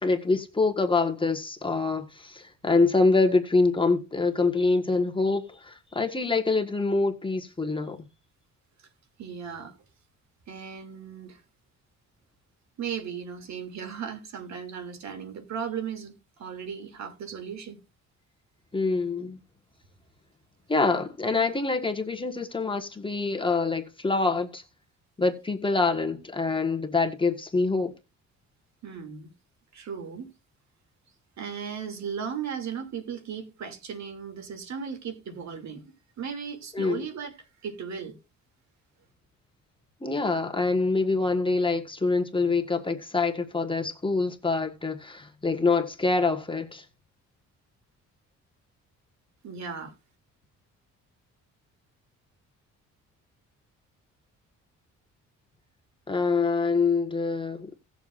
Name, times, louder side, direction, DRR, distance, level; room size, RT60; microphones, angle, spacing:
voice 1, 0.0-8.0 18.7-19.4 20.7-24.6 25.2-28.0 36.7-37.0 40.0-46.8 56.1-57.7, left 3 dB, 15° left, 1.6 m, -25 dB
voice 2, 9.2-9.7 10.5-11.4 12.8-16.1 16.4-17.8 28.8-29.3 29.7-30.3 31.4-35.8 36.2-37.4 37.6-38.1 49.4-49.9, right 7 dB, 65° right, 2.9 m, -36 dB
18.0 x 7.1 x 2.6 m
cardioid pair, 100°, 30 cm